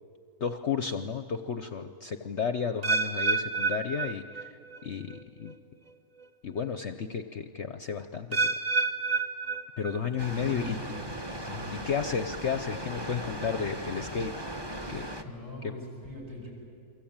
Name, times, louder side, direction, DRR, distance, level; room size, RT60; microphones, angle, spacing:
voice 1, 0.4-4.6 4.8-5.1 5.4-5.5 6.4-8.5 9.8-11.0 11.7-14.3 14.9-15.1, left 6 dB, 50° left, 9 dB, 0.9 m, -32 dB
sound 1, 2.8-4.8 5.1-5.5 6.2-6.3 8.3-10.3 10.6-11.0 11.7-11.8, right 4 dB, 50° right, 0.4 m, -30 dB
Water, 10.2-15.2, right 1 dB, 15° right, 1.2 m, -38 dB
voice 2, 10.2-10.9 11.4-11.7 15.2-16.5, left 1 dB, 70° right, -3 dB, 8.3 m, -41 dB
29.0 x 23.5 x 8.9 m, 2.3 s
omnidirectional pair, 1.8 m